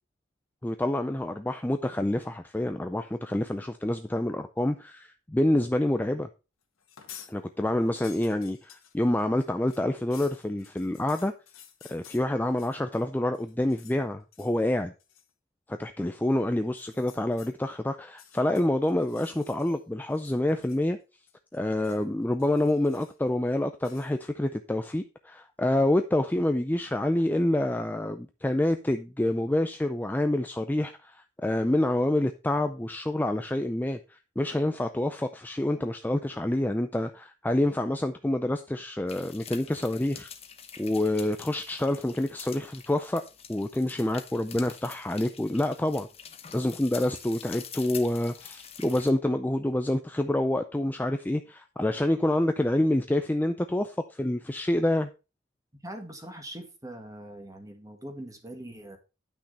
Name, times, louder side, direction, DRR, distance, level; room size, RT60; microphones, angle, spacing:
voice 1, 0.6-6.3 7.3-11.3 11.9-14.9 15.7-21.0 21.5-40.3 40.8-43.2 43.5-46.1 46.5-55.1, left 1 dB, 10° left, 0.4 m, -27 dB
sound 1, 6.8-7.3 7.7-13.0 13.3-14.0 14.3-14.6 15.0-15.3 16.6-17.5 18.1-19.8 20.1-21.0 21.3-22.0 22.4-23.3 23.8-24.1, left 9 dB, 85° left, 1.6 m, -52 dB
sound 2, 39.1-49.1, left 8 dB, 30° left, 0.9 m, -46 dB
voice 2, 55.8-59.0, right 1 dB, 15° right, 1.7 m, -42 dB
10.0 x 6.0 x 4.2 m
head